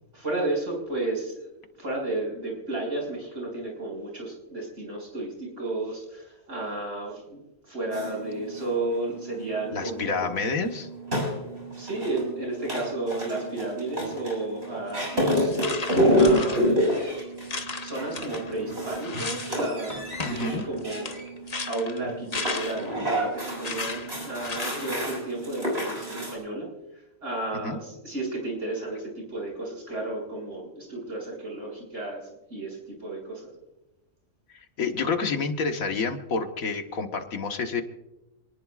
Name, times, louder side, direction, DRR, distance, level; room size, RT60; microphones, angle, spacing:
voice 1, 0.1-1.5 1.8-10.4 11.7-16.8 17.8-21.1 21.7-26.7 26.9-33.5, right 2 dB, 65° right, -2 dB, 7.0 m, -33 dB
sound 1, 7.9-26.3, equal, 50° right, 7.3 m, -29 dB
voice 2, 9.7-10.9 20.2-20.6 27.6-27.8 34.5-37.8, left 4 dB, 90° left, 5 dB, 1.8 m, -29 dB
sound 2, 14.9-15.1 15.5-17.0 17.4-19.6 19.9-23.0 23.6-24.9, left 4 dB, 30° left, 1.0 m, -35 dB
27.0 x 19.5 x 2.5 m, 1.0 s
omnidirectional pair, 1.4 m